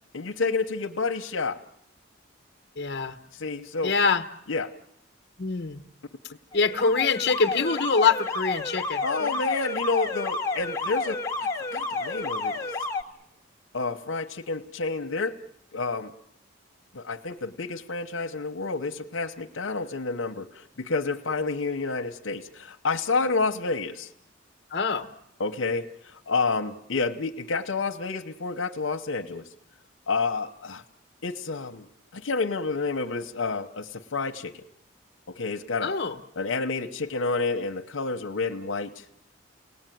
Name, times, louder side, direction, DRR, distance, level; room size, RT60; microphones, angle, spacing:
voice 1, 0.1-1.6 3.3-3.9 4.5-4.7 9.0-12.7 13.7-15.4 15.7-16.1 16.9-24.1 25.4-29.5 30.1-30.8 31.2-34.6 35.3-36.0 36.4-39.0, left 4 dB, 85° left, 4 dB, 1.0 m, -29 dB
voice 2, 2.8-3.2 3.8-4.2 5.4-5.8 6.5-9.4 24.7-25.1 35.8-36.1, left 5 dB, 55° left, 6 dB, 1.2 m, -25 dB
Alarm, 6.5-13.0, left 3 dB, 15° left, 1.3 m, -30 dB
29.0 x 18.5 x 9.3 m, 0.81 s
head